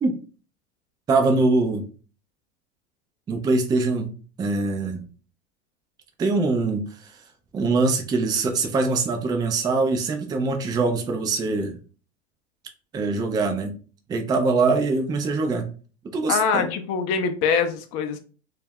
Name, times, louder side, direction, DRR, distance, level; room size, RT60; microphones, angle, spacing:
voice 1, 1.1-1.9 3.3-4.1 4.4-5.0 6.2-7.2 7.5-11.8 12.9-13.7 14.1-15.7 16.1-16.7, right 3 dB, 10° right, 0.3 m, -23 dB
voice 2, 16.3-18.2, left 6 dB, 45° left, 0.5 m, -23 dB
2.4 x 2.0 x 3.4 m
hypercardioid pair, 100°, 36 cm